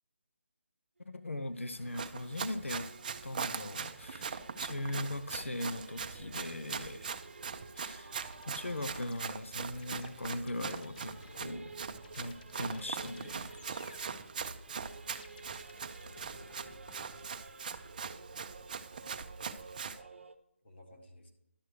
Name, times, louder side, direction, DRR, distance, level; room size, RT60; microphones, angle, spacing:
Singing / Musical instrument, 1.0-20.4, right 3 dB, 65° right, 0.8 m, -53 dB
voice 1, 1.1-2.9 3.2-7.1 7.7-8.1 8.4-11.7 12.1-13.7, left 1 dB, 90° left, 10 dB, 0.6 m, -40 dB
Run, 1.8-20.0, right 6 dB, 40° right, 0.5 m, -42 dB
sound 1, 8.3-17.3, left 3 dB, 40° left, 0.8 m, -57 dB
voice 2, 16.1-17.2 19.7-20.1 20.6-21.3, left 1 dB, 60° left, -1 dB, 1.9 m, -60 dB
11.5 x 7.9 x 3.2 m, 0.75 s
figure-of-eight pair, 150°, 7 cm